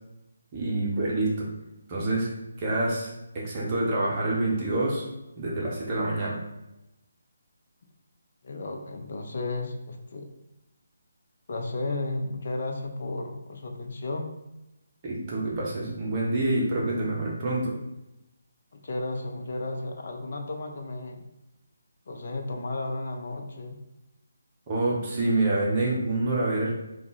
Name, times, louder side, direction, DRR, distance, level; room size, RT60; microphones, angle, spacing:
voice 1, 0.5-1.5 1.9-2.3 2.6-5.0 5.4-6.4 15.0-17.8 24.7-26.8, right 2 dB, 30° right, -4 dB, 1.1 m, -27 dB
voice 2, 8.4-10.3 11.5-14.4 18.7-21.2 22.1-23.8, left 2 dB, 55° left, 2 dB, 0.7 m, -33 dB
3.6 x 2.5 x 4.1 m, 0.92 s
figure-of-eight pair, 150°, 0 cm